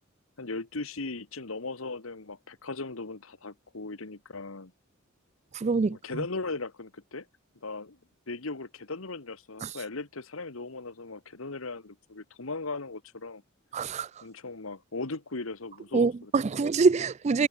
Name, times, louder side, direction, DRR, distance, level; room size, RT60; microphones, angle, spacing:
voice 1, 0.4-4.7 5.9-7.3 7.6-8.0 8.3-13.4 14.2-16.6, left 3 dB, 75° left, 1.6 m, -38 dB
voice 2, 5.5-6.0 9.6-9.7 13.7-14.1 15.9-17.5, right 4 dB, 30° right, 0.4 m, -24 dB
head